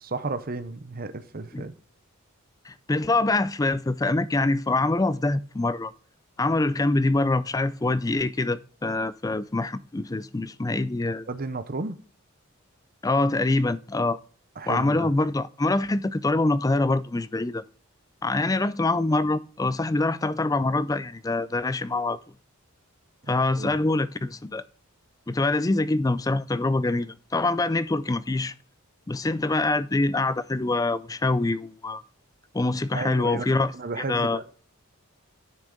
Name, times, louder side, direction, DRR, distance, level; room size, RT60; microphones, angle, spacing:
voice 1, 0.0-1.7 11.3-12.0 14.6-15.1 23.6-23.8 32.9-34.4, right 3 dB, 40° right, 0.8 m, -33 dB
voice 2, 2.6-5.9 6.4-11.3 13.0-14.2 14.7-17.6 18.2-22.2 23.3-24.6 25.3-28.5 29.1-32.0 32.5-34.4, left 2 dB, 15° left, 0.4 m, -25 dB
10.5 x 6.4 x 3.7 m
head